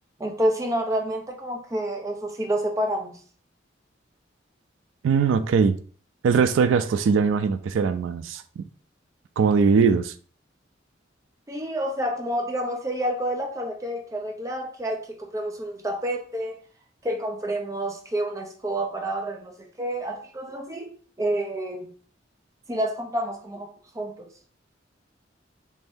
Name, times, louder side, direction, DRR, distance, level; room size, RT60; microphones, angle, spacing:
voice 1, 0.2-3.2 11.5-16.6 17.0-20.9 21.2-21.9 22.7-23.7 23.9-24.3, right 1 dB, 15° right, 0.5 m, -29 dB
voice 2, 5.0-5.8 6.2-8.6 9.4-10.1, right 5 dB, 90° right, 0.3 m, -21 dB
3.2 x 2.6 x 3.5 m
head